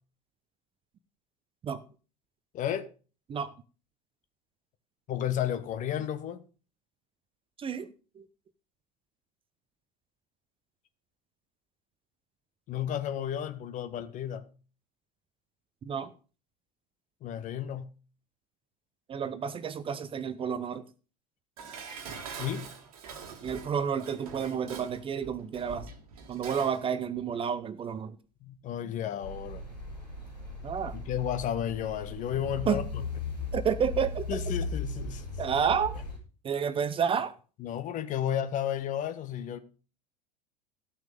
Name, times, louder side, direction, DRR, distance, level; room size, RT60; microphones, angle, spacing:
voice 1, 2.5-2.9 5.1-6.4 12.7-14.5 17.2-17.9 22.4-22.7 28.4-29.6 30.9-33.0 34.3-35.3 37.6-39.6, left 10 dB, 35° left, 1.2 m, -32 dB
voice 2, 7.6-7.9 8.2-8.3 15.9-16.1 19.1-20.8 23.4-25.9 26.3-28.2 30.6-31.0 32.7-32.8 33.5-34.4 35.4-36.0 36.4-37.3, right 7 dB, 25° right, 0.7 m, -30 dB
Dishes pots and pans, 21.6-26.9 27.2-27.3, right 5 dB, 60° right, 1.7 m, -44 dB
sound 1, 29.2-36.2, left 3 dB, 85° left, 6.1 m, -37 dB
14.0 x 6.1 x 5.3 m
figure-of-eight pair, 75°, 21 cm